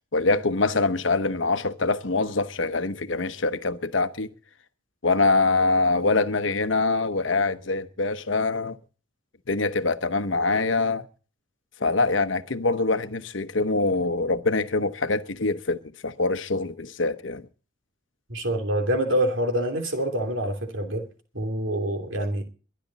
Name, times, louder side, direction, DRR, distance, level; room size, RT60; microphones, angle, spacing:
voice 1, 0.1-4.3 5.0-8.8 9.5-11.0 11.8-17.4, left 3 dB, 70° left, 1.0 m, -24 dB
voice 2, 18.3-21.0 21.3-22.4, right 1 dB, 75° right, 2.9 m, -26 dB
22.5 x 10.5 x 4.1 m
head